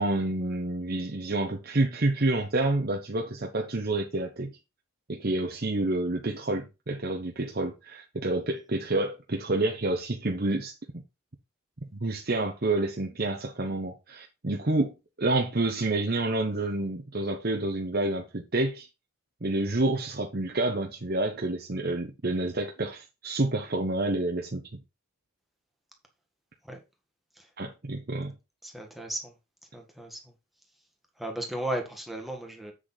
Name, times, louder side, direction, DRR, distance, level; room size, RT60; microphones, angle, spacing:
voice 1, 0.0-4.5 5.1-10.7 11.9-14.9 15.2-18.9 19.4-24.6 27.6-28.3, right 2 dB, 45° right, 1.0 m, -28 dB
voice 2, 28.6-29.3 29.7-30.2 31.2-32.7, right 1 dB, ahead, 1.6 m, -35 dB
8.0 x 6.4 x 4.0 m
head